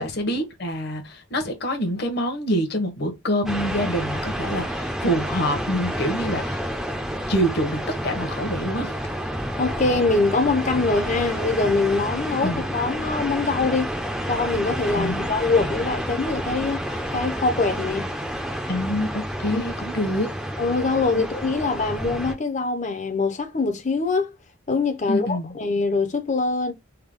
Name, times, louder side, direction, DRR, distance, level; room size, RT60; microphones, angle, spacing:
voice 1, 0.0-6.6 7.3-8.9 12.4-12.6 14.9-15.2 15.6-15.7 18.7-20.3 25.1-25.5, equal, 55° left, 1.0 m, -26 dB
sound 1, 3.5-22.3, equal, ahead, 0.6 m, -29 dB
voice 2, 9.6-13.9 14.3-18.1 19.5-19.6 20.6-24.3 24.7-25.3 25.5-26.7, left 3 dB, 35° left, 0.7 m, -23 dB
3.5 x 2.2 x 3.5 m
head